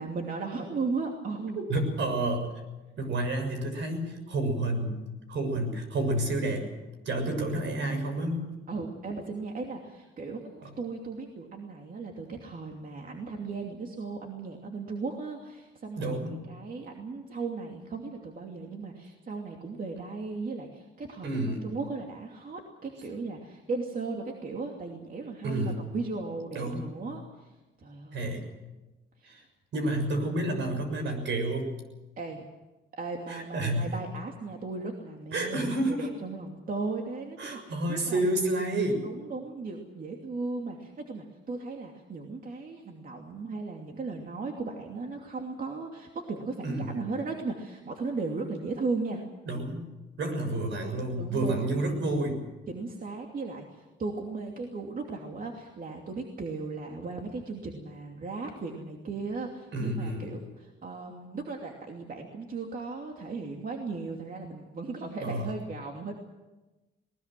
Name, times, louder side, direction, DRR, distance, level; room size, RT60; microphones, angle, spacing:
voice 1, 0.0-1.6 7.2-7.4 8.7-16.1 16.5-28.3 29.2-29.4 32.2-32.5 32.9-38.2 39.0-49.2 51.2-51.7 52.7-66.1, right 3 dB, 45° right, 2 dB, 2.8 m, -36 dB
voice 2, 1.5-2.5 3.0-5.0 5.3-6.6 7.0-8.5 16.0-16.4 21.2-21.6 25.4-25.8 26.5-26.8 28.1-28.5 29.2-29.4 29.7-31.7 33.3-34.0 35.3-36.1 37.4-39.0 46.6-47.0 49.5-49.9 50.2-52.4 59.7-60.3 65.2-65.4, right 1 dB, 70° right, 6 dB, 6.6 m, -29 dB
20.5 x 20.0 x 7.6 m, 1.1 s
cardioid pair, 90°, 20 cm